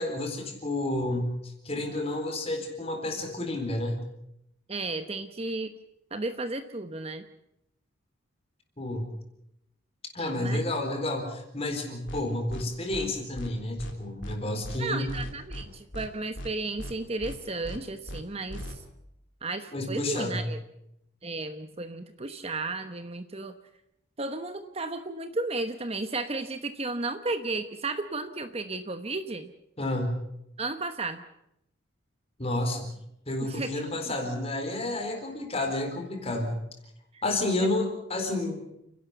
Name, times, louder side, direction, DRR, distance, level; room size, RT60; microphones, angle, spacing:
voice 1, 0.0-4.0 8.8-9.1 10.1-15.1 19.7-20.4 29.8-30.2 32.4-32.9 33.3-36.6 37.2-38.6, left 2 dB, 30° left, 4 dB, 4.1 m, -30 dB
voice 2, 4.7-5.7 6.1-7.3 10.2-10.6 14.8-18.8 19.4-20.6 21.2-23.5 24.2-29.5 30.6-31.2 33.4-33.8 37.1-37.2, right 3 dB, 30° right, 9 dB, 1.0 m, -34 dB
sound 1, 12.1-12.2 12.5-12.6 12.9-13.1 13.4-13.5 13.8-13.9 14.2-14.4 14.6-14.8 15.1-15.6 15.9-16.1 16.4-16.5 16.8-16.9 17.2-17.4 17.6-17.8 18.1-18.2 18.5-18.7, equal, 60° left, 3.6 m, -38 dB
30.0 x 11.5 x 8.1 m, 0.80 s
head